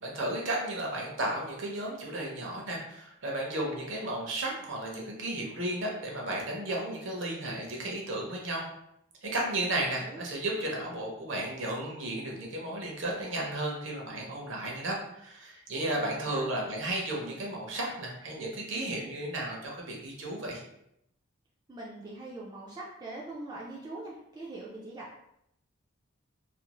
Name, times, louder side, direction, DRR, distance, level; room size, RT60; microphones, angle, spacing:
voice 1, 0.0-8.6 9.2-20.6, right 1 dB, 65° right, -1 dB, 0.7 m, -34 dB
voice 2, 15.9-16.5 21.7-25.2, right 2 dB, 20° right, -5 dB, 0.3 m, -42 dB
2.5 x 2.3 x 3.0 m, 0.78 s
head